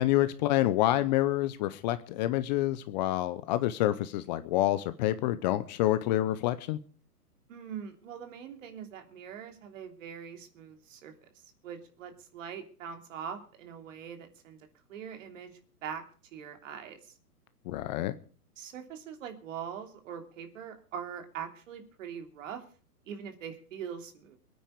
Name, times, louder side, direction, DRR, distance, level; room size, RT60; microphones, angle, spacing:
voice 1, 0.0-6.8 17.7-18.1, left 14 dB, 30° left, 13 dB, 0.7 m, -27 dB
voice 2, 7.5-11.3 11.6-14.6 14.9-16.0 16.3-17.1 18.6-22.6 23.1-24.4, right 8 dB, 55° right, 6 dB, 3.0 m, -42 dB
22.0 x 9.4 x 5.0 m, 0.42 s
hypercardioid pair, 130°, 47 cm